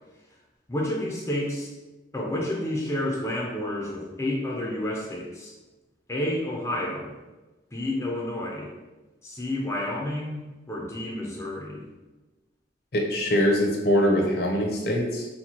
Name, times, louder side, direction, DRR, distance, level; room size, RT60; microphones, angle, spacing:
voice 1, 0.7-1.7 2.1-5.5 6.1-7.1 7.7-8.7 9.2-11.8, left 1 dB, 15° left, -3 dB, 0.5 m, -30 dB
voice 2, 12.9-15.3, equal, 55° left, 0 dB, 0.7 m, -23 dB
4.4 x 2.3 x 4.2 m, 1.1 s
head